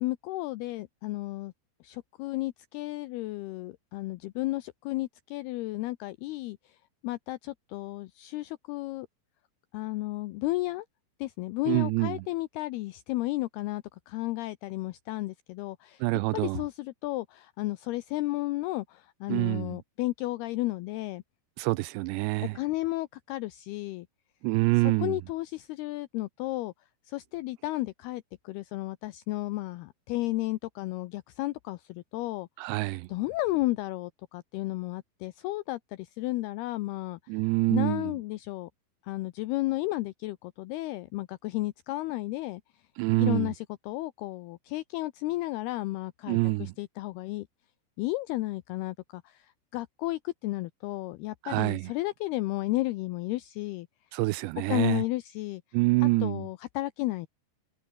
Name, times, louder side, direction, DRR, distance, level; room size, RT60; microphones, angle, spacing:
voice 1, 0.0-1.5 1.8-6.8 7.0-9.1 9.7-10.9 11.2-16.0 16.3-21.2 22.6-24.1 24.8-26.7 27.1-32.5 32.8-37.2 37.7-38.7 39.0-42.6 43.2-47.5 48.0-53.9 54.7-55.6 56.0-57.3, left 18 dB, 90° left, 2.3 m, -33 dB
voice 2, 11.7-12.2 16.0-16.6 19.3-19.7 21.6-22.5 24.4-25.2 32.6-33.1 37.3-38.1 43.0-43.5 46.3-46.7 51.4-51.9 54.1-55.0 55.7-56.4, right 22 dB, 80° right, 2.6 m, -26 dB
omnidirectional pair, 5.3 m